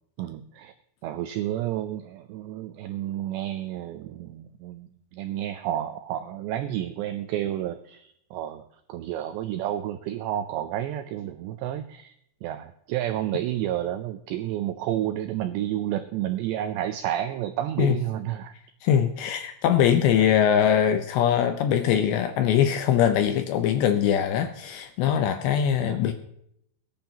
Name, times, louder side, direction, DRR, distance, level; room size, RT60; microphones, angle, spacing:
voice 1, 0.2-0.7 1.0-8.6 8.9-12.1 12.4-18.6 25.8-26.0, right 12 dB, 85° right, 9 dB, 2.5 m, -30 dB
voice 2, 18.8-26.1, left 9 dB, 80° left, 8 dB, 2.7 m, -22 dB
22.5 x 10.5 x 2.9 m, 0.74 s
omnidirectional pair, 5.8 m